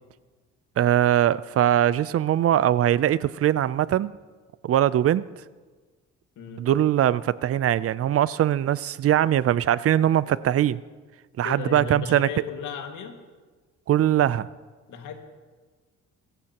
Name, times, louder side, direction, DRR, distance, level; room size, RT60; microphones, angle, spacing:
voice 1, 0.8-4.1 4.6-5.3 6.6-10.8 11.4-12.3 13.9-14.5, right 11 dB, 50° right, 0.5 m, -21 dB
voice 2, 11.4-13.2 14.9-15.2, left 5 dB, 80° left, 2.0 m, -35 dB
24.5 x 15.0 x 2.9 m
cardioid pair, 90°, 30 cm